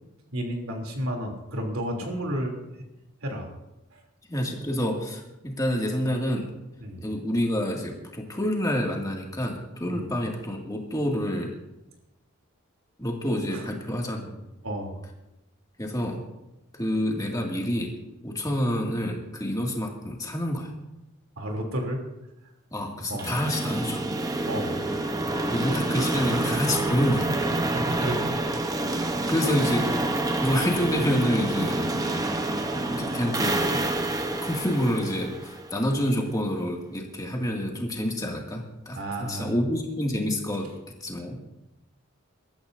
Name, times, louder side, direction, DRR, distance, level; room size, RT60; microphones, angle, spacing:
voice 1, 0.3-2.5 3.2-3.5 3.9-4.0 6.8-7.0 9.9-10.1 13.5-13.6 14.6-15.0 21.4-22.0 23.1-23.3 24.5-24.8 27.7-28.4 33.1-33.2 38.9-39.5, right 1 dB, 75° right, 1 dB, 3.1 m, -31 dB
voice 2, 4.3-6.5 7.0-11.6 13.0-14.5 15.8-16.2 16.7-18.0 18.2-20.7 22.7-24.0 25.5-27.3 29.3-29.9 30.4-31.8 32.9-33.9 34.4-40.7 41.0-41.4, equal, 15° left, 0 dB, 2.2 m, -28 dB
sound 1, 23.2-36.1, right 2 dB, 15° right, 0.9 m, -28 dB
23.5 x 13.5 x 2.7 m, 0.96 s
head